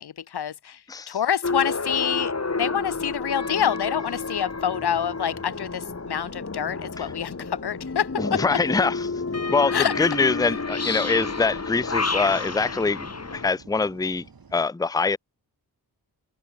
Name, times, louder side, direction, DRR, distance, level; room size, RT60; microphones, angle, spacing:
voice 1, 0.0-0.8 1.1-8.4 9.7-9.9, left 9 dB, 75° left, 1.0 m, -27 dB
sound 1, 1.4-13.5, left 3 dB, 40° left, 3.9 m, -30 dB
sound 2, 4.7-14.7, right 5 dB, 60° right, 5.7 m, -52 dB
voice 2, 8.2-9.1 9.5-14.3 14.5-15.2, left 4 dB, 10° left, 0.6 m, -24 dB
cardioid pair, 70°, 40 cm